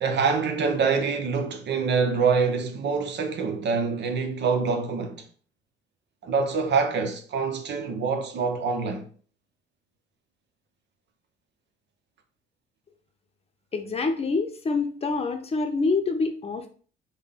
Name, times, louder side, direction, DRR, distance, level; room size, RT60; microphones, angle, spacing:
voice 1, 0.0-5.3 6.2-9.1, right 5 dB, 60° right, 0.8 m, -25 dB
voice 2, 13.7-16.7, left 3 dB, 30° left, 0.7 m, -26 dB
3.8 x 2.2 x 3.6 m
cardioid pair, 90°, 20 cm